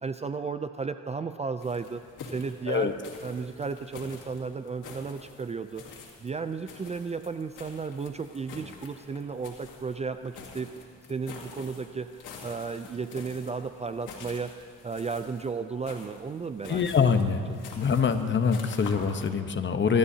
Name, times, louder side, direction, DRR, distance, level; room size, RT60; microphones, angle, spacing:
voice 1, 0.0-2.9 3.2-5.8 6.2-10.7 11.1-14.5 14.8-17.2, right 5 dB, 20° right, 10 dB, 0.4 m, -34 dB
sound 1, 1.6-19.3, left 5 dB, 85° left, 2.2 m, -47 dB
voice 2, 16.7-17.4 17.8-20.0, left 6 dB, 40° left, 8 dB, 1.0 m, -24 dB
24.0 x 12.5 x 2.8 m, 2.2 s
cardioid pair, 90°, 30 cm